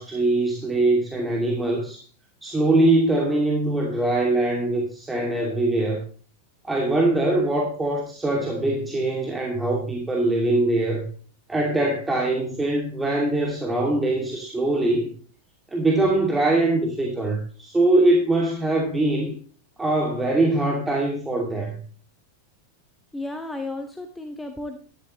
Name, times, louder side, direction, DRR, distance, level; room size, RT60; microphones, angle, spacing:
voice 1, 0.0-2.0 2.4-6.0 6.7-11.1 11.5-15.1 15.7-19.3 19.8-21.7, right 2 dB, 10° right, -1 dB, 2.6 m, -22 dB
voice 2, 23.1-24.8, left 2 dB, 5° left, 5 dB, 1.2 m, -33 dB
12.5 x 11.5 x 3.1 m, 0.42 s
figure-of-eight pair, 90°, 0 cm